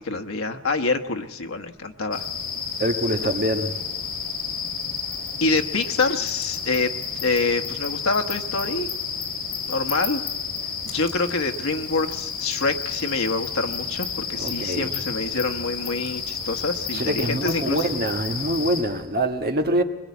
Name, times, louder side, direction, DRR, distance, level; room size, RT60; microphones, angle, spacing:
voice 1, 0.0-2.2 5.4-8.9 9.7-10.2 10.9-17.9, left 3 dB, 85° left, 1.2 m, -26 dB
sound 1, 2.1-18.8, left 6 dB, 50° left, 7.4 m, -31 dB
voice 2, 2.8-3.8 14.4-14.9 16.9-19.8, right 1 dB, 45° right, 1.6 m, -25 dB
22.5 x 21.0 x 8.3 m
head